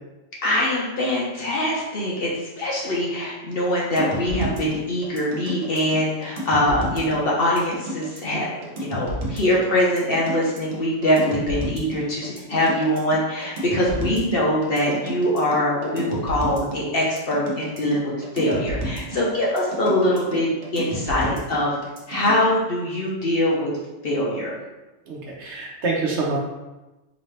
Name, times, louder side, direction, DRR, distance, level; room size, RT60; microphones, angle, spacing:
voice 1, 0.4-21.8 22.1-23.7 24.0-24.5, left 1 dB, 55° left, -4 dB, 0.9 m, -23 dB
sound 1, 4.0-22.5, right 1 dB, 85° right, 1.2 m, -31 dB
voice 2, 25.1-26.4, right 3 dB, 65° right, -2 dB, 1.0 m, -26 dB
3.9 x 2.7 x 3.3 m, 1.1 s
omnidirectional pair, 1.3 m